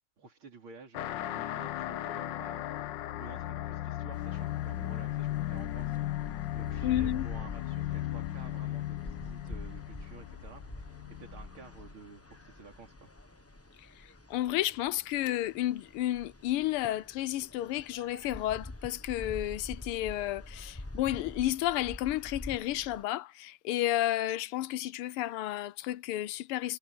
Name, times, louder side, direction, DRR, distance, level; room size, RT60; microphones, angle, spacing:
voice 1, 0.2-13.1, right 4 dB, 70° right, 4.1 m, -52 dB
sound 1, 0.9-11.9, left 14 dB, 70° left, 1.2 m, -36 dB
sound 2, 4.1-23.0, left 1 dB, 15° left, 0.6 m, -47 dB
voice 2, 6.8-7.3 13.8-26.8, left 14 dB, 85° left, 1.6 m, -32 dB
omnidirectional pair, 2.4 m